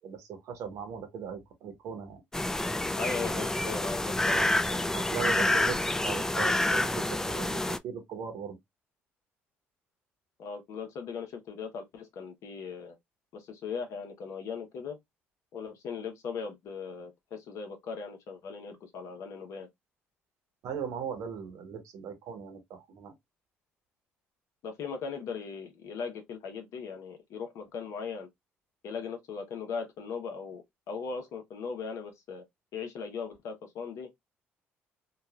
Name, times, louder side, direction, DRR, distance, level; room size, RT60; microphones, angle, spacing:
voice 1, 0.0-2.2 4.3-4.5 4.9-8.6 20.6-23.1, right 7 dB, 70° right, 0.9 m, -38 dB
sound 1, 2.3-7.8, left 1 dB, 10° left, 0.3 m, -28 dB
voice 2, 3.0-4.4 4.7-4.8 10.4-13.0 13.3-15.0 15.5-19.7 24.6-28.3 28.8-32.4 32.7-34.1, left 5 dB, 65° left, 0.9 m, -38 dB
3.0 x 2.4 x 2.3 m
hypercardioid pair, 55°, 6 cm